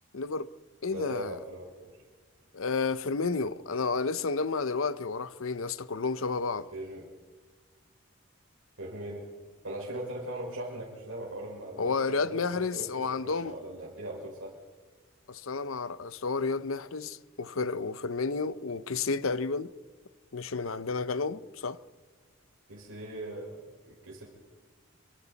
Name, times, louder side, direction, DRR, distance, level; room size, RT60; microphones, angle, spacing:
voice 1, 0.1-0.5 0.8-1.4 2.5-6.7 11.8-13.5 15.3-19.7 20.3-21.8, left 4 dB, 90° left, 0.8 m, -31 dB
voice 2, 0.9-2.0 6.7-7.1 8.8-9.3 9.6-14.5 22.7-24.3, right 1 dB, 80° right, 5.2 m, -40 dB
29.0 x 24.5 x 4.1 m
head